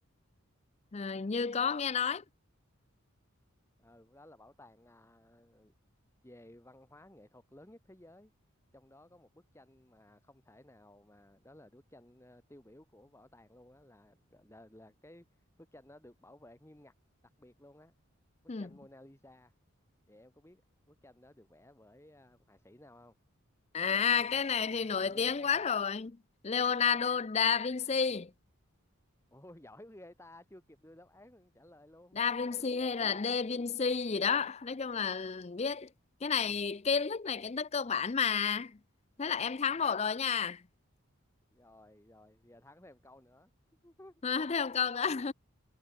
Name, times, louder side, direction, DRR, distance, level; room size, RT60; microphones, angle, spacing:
voice 1, 0.9-2.2 18.5-18.7 23.7-26.2 26.4-28.3 32.1-35.9 36.2-38.8 39.2-40.6 44.2-45.3, left 6 dB, 30° left, 0.4 m, -31 dB
voice 2, 3.8-5.7 6.2-8.3 8.7-16.9 17.4-17.9 18.6-19.5 20.1-20.6 20.9-23.2 23.8-25.7 26.8-27.1 29.3-32.2 32.4-33.2 33.5-33.6 39.8-40.0 41.5-43.5 43.8-44.2, left 1 dB, 10° left, 1.3 m, -57 dB
head